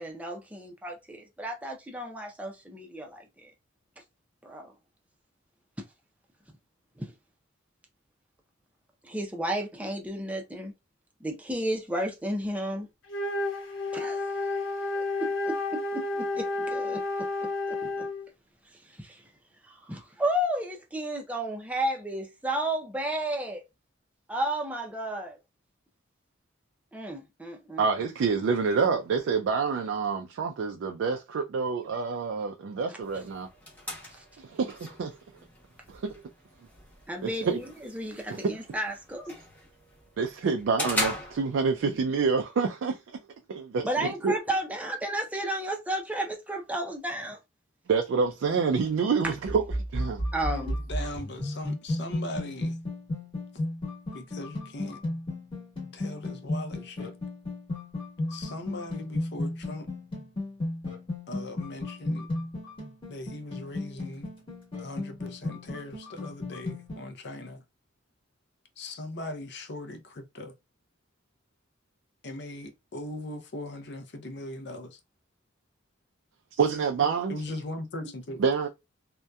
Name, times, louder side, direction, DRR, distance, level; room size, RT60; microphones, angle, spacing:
voice 1, 0.0-3.5 4.4-4.7 7.0-7.1 9.0-10.7 11.2-12.9 13.9-14.2 14.9-17.0 17.7-18.1 19.0-19.2 19.7-23.6 24.3-25.4 26.9-27.9 34.2-34.3 37.1-39.4 43.8-47.4 50.3-50.8, right 1 dB, 5° right, 0.5 m, -33 dB
Wind instrument woodwind instrument, 13.0-18.3, left 2 dB, 80° left, 0.9 m, -31 dB
voice 2, 27.8-33.5 34.4-35.2 35.9-36.1 37.2-37.6 38.3-38.4 40.2-43.0 43.5-44.4 47.9-49.7 49.9-50.2 76.6-77.3 78.4-78.7, right 5 dB, 75° right, 0.3 m, -27 dB
sound 1, 33.0-42.0, left 1 dB, 10° left, 0.9 m, -39 dB
sound 2, 48.3-67.1, left 1 dB, 25° left, 1.2 m, -34 dB
voice 3, 50.5-52.8 54.1-55.0 55.9-57.1 58.3-59.9 61.3-62.3 63.1-64.3 64.8-67.6 68.8-70.5 72.2-75.0 77.3-78.4, left 1 dB, 55° left, 0.5 m, -39 dB
2.7 x 2.2 x 2.2 m
head